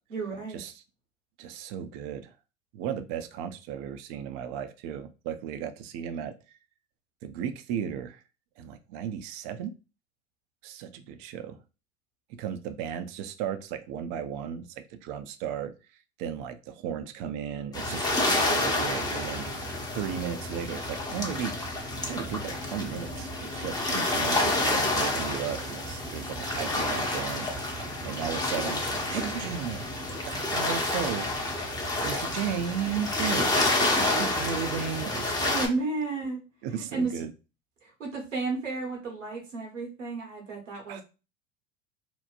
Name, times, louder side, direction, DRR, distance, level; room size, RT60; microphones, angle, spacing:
voice 1, 0.1-0.6 35.4-36.4 36.7-37.2 37.8-41.0, right 3 dB, 80° right, 0 dB, 1.2 m, -32 dB
voice 2, 1.4-2.3 2.7-6.3 7.2-8.2 8.6-9.7 10.6-11.6 12.3-15.7 16.2-19.7 19.9-21.5 22.1-29.9 30.2-31.3 32.0-35.7 36.6-37.3 40.9-41.0, right 8 dB, 45° right, 9 dB, 0.5 m, -35 dB
sound 1, 17.7-35.7, left 2 dB, 10° left, 0.6 m, -29 dB
2.9 x 2.1 x 2.4 m, 0.31 s
figure-of-eight pair, 80°, 37 cm